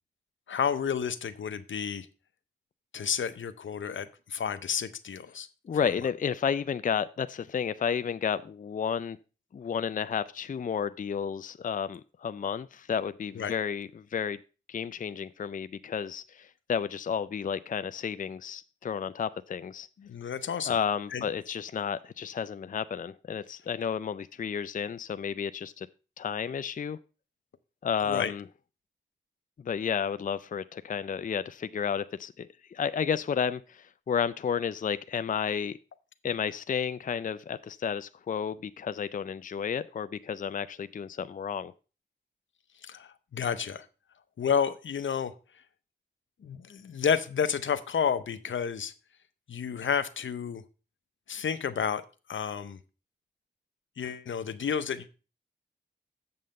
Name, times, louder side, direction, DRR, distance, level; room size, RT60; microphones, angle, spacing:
voice 1, 0.5-2.1 2.9-5.5 5.8-5.9 13.3-13.5 20.0-20.8 21.1-21.3 28.0-28.3 42.8-43.8 44.4-45.3 46.4-48.9 49.5-50.6 51.3-52.0 52.3-52.8 54.0-55.1, left 7 dB, 80° left, 0.7 m, -30 dB
voice 2, 5.7-9.2 9.5-14.4 14.7-19.9 20.7-25.9 26.2-27.0 27.8-28.4 29.6-35.8 36.2-41.7, left 7 dB, 45° left, 0.4 m, -32 dB
7.8 x 5.6 x 5.2 m
cardioid pair, 55°, 20 cm